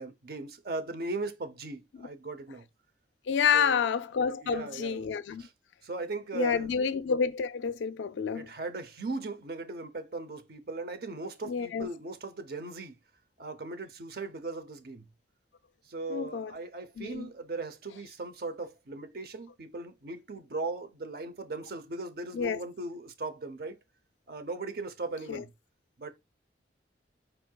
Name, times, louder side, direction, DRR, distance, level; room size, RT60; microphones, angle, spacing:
voice 1, 0.0-2.6 3.5-3.9 4.4-5.1 5.4-5.5 5.8-6.7 8.3-13.0 13.4-15.1 15.8-23.8 24.3-25.5 26.0-26.1, right 3 dB, 55° right, 0.7 m, -38 dB
voice 2, 3.3-5.4 6.3-8.5 11.5-11.9 16.1-16.5 17.0-17.3 22.3-22.6 25.3-25.4, left 6 dB, 85° left, 0.4 m, -29 dB
4.5 x 4.5 x 2.2 m
head